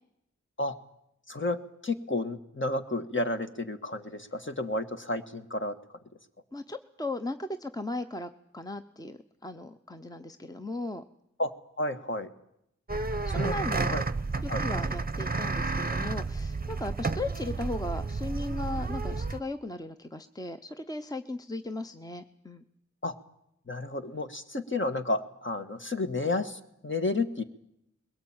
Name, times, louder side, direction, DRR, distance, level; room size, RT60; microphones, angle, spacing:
voice 1, 1.3-1.6 1.8-5.7 11.4-11.5 11.8-12.3 13.3-13.5 13.9-14.0 14.5-14.6 23.0-23.1 23.7-27.4, left 2 dB, 40° left, 7 dB, 1.6 m, -31 dB
voice 2, 6.5-11.0 13.0-13.9 14.4-22.6, left 2 dB, 10° left, 8 dB, 0.8 m, -37 dB
sound 1, 12.9-19.4, right 3 dB, 30° right, 0.8 m, -31 dB
21.5 x 18.0 x 8.9 m, 0.79 s
wide cardioid pair, 70°, 31 cm